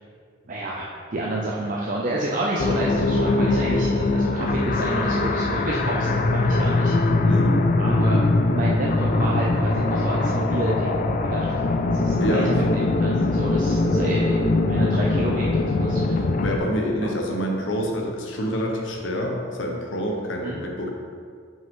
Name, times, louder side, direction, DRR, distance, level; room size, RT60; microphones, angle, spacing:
voice 1, 0.5-6.9 7.8-8.2 8.5-11.0 11.3-11.6 11.9-12.5 12.7-16.2 16.6-17.1 20.4-20.6, right 1 dB, 40° right, -3 dB, 0.5 m, -29 dB
sound 1, 2.6-16.6, left 2 dB, 40° left, 0.3 m, -22 dB
voice 2, 7.2-7.6 12.2-12.6 16.4-20.9, equal, 70° left, 1 dB, 0.9 m, -27 dB
5.7 x 5.2 x 3.7 m, 2.1 s
head